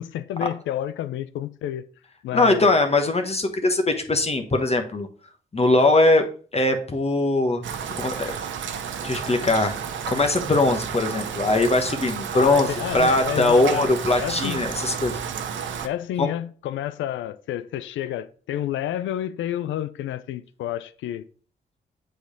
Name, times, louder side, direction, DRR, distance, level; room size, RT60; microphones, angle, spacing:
voice 1, 0.0-1.9 2.2-2.7 12.3-13.9 14.2-14.6 15.8-21.3, left 12 dB, 85° left, 0.5 m, -30 dB
voice 2, 2.3-5.1 5.5-6.2 6.5-7.6 8.0-8.4 9.0-9.7 10.1-12.7 12.9-15.2 16.2-16.3, left 2 dB, 30° left, 1.1 m, -21 dB
Rain, 7.6-15.9, right 7 dB, 80° right, 0.8 m, -31 dB
7.9 x 3.3 x 5.1 m
supercardioid pair, 50°, 19 cm